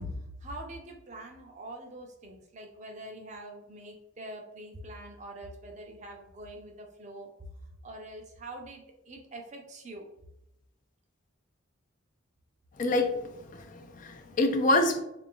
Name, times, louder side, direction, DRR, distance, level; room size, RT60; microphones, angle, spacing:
voice 1, 0.0-10.1, right 1 dB, 35° right, 2 dB, 0.6 m, -44 dB
voice 2, 12.8-15.0, left 2 dB, 40° left, 5 dB, 0.4 m, -27 dB
3.7 x 2.5 x 3.7 m, 0.86 s
head